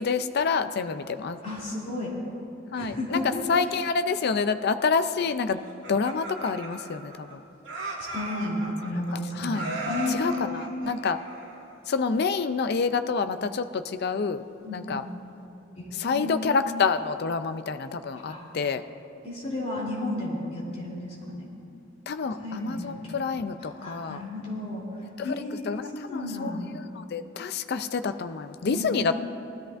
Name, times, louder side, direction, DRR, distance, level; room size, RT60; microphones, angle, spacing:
voice 1, 0.0-1.4 2.7-5.6 5.9-7.4 9.1-9.7 10.1-11.2 11.9-14.4 14.7-15.0 15.9-18.8 22.1-24.2 25.2-25.3 25.7-29.1, left 5 dB, 55° left, 10 dB, 0.4 m, -28 dB
voice 2, 1.4-2.1 2.7-3.5 8.0-10.4 14.6-15.1 15.7-16.5 18.2-18.5 19.2-21.4 22.3-23.2 23.7-24.8 25.2-26.7 28.6-29.1, left 1 dB, 35° left, -5 dB, 3.0 m, -33 dB
Laughter, 5.6-7.3 7.6-9.1 9.5-11.8, right 2 dB, 65° right, 2.2 m, -36 dB
19.5 x 13.5 x 2.6 m, 2.8 s
head